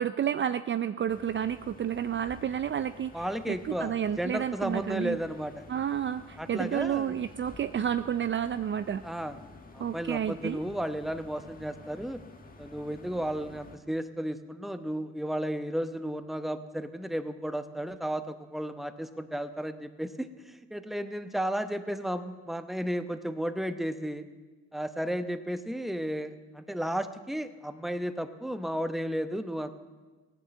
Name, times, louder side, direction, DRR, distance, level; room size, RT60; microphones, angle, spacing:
voice 1, 0.0-5.2 5.7-9.0 9.8-10.6, right 9 dB, 40° right, 12 dB, 0.5 m, -30 dB
sound 1, 1.1-13.8, left 3 dB, 30° left, 1.7 m, -51 dB
voice 2, 3.1-5.6 6.4-7.2 9.0-9.4 9.7-12.2 12.6-24.2 24.7-29.7, equal, ahead, 10 dB, 0.9 m, -33 dB
16.5 x 10.0 x 7.5 m, 1.3 s
cardioid pair, 90°, 30 cm